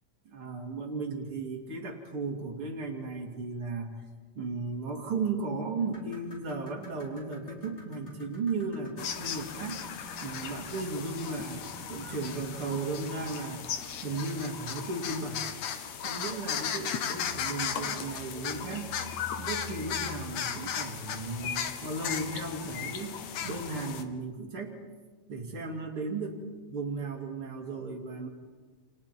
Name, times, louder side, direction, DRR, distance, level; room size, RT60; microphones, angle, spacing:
voice 1, 0.2-4.0 4.3-9.8 10.2-13.7 14.0-15.5 16.0-18.9 19.4-23.2 23.4-24.7 25.3-26.4 26.7-28.3, right 3 dB, 45° right, 2 dB, 3.3 m, -35 dB
sound 1, 5.8-14.2 15.6-15.7 16.2-16.3 17.0-17.1, left 1 dB, 20° left, 4.6 m, -51 dB
sound 2, 9.0-24.0, left 8 dB, 75° left, 2.5 m, -36 dB
29.0 x 29.0 x 4.6 m, 1.4 s
omnidirectional pair, 3.4 m